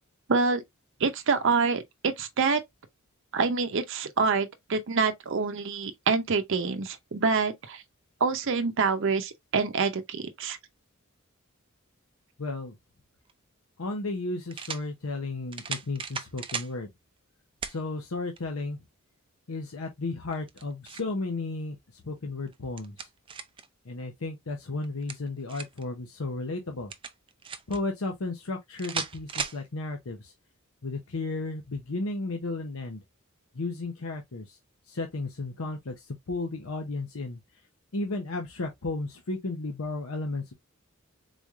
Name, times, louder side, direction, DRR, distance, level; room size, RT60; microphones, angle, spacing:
voice 1, 0.3-0.6 1.0-2.6 3.3-7.8 8.2-10.6, right 4 dB, 60° right, 0.6 m, -26 dB
voice 2, 12.4-12.8 13.8-16.9 17.6-18.8 19.5-21.8 22.0-23.1 23.9-26.9 27.7-30.3 30.8-33.0 33.5-34.6 34.9-37.4 37.9-40.5, left 2 dB, 80° left, 0.8 m, -34 dB
sound 1, 13.3-13.4 14.5-14.9 15.5-16.7 17.6-17.8 18.4-18.5 20.3-21.1 22.5-23.7 24.8-25.8 26.9-27.8 28.8-29.6, right 6 dB, 25° right, 0.4 m, -36 dB
4.0 x 3.1 x 2.4 m
head